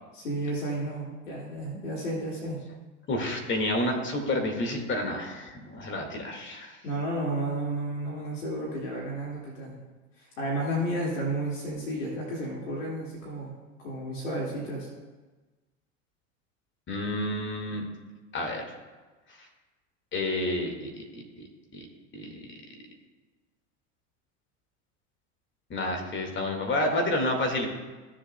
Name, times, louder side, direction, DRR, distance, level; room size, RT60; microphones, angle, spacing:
voice 1, 0.1-2.6 6.8-9.7 10.2-13.5 13.8-14.9, right 1 dB, 90° left, -4 dB, 2.2 m, -32 dB
voice 2, 3.1-6.8 16.9-17.8 18.3-18.6 20.1-21.4 21.7-21.9 22.1-22.4 25.7-27.7, left 1 dB, 30° left, 3 dB, 1.9 m, -30 dB
14.5 x 7.4 x 2.2 m, 1.2 s
hypercardioid pair, 85°, 37 cm